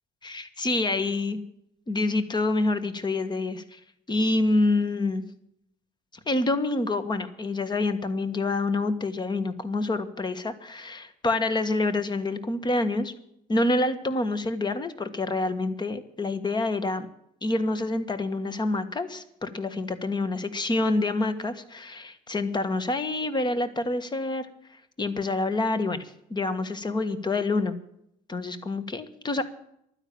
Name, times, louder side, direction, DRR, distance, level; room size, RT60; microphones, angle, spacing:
voice 1, 0.2-1.4 1.9-3.8 4.1-5.2 6.3-13.1 13.5-17.1 17.4-24.5 25.0-27.7 28.3-29.4, left 2 dB, 25° left, 12 dB, 1.6 m, -27 dB
12.0 x 10.0 x 8.7 m, 0.74 s
cardioid pair, 110°, 17 cm